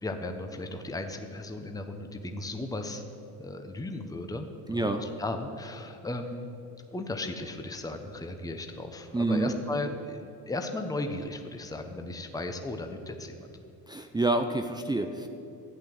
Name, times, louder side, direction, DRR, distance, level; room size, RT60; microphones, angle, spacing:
voice 1, 0.0-3.0 3.4-6.5 6.9-13.5, left 2 dB, 10° left, 5 dB, 1.0 m, -36 dB
voice 2, 4.7-5.0 9.1-9.5 13.9-15.3, right 2 dB, 10° right, 5 dB, 0.6 m, -28 dB
12.5 x 8.8 x 7.8 m, 2.6 s
supercardioid pair, 90°, 43 cm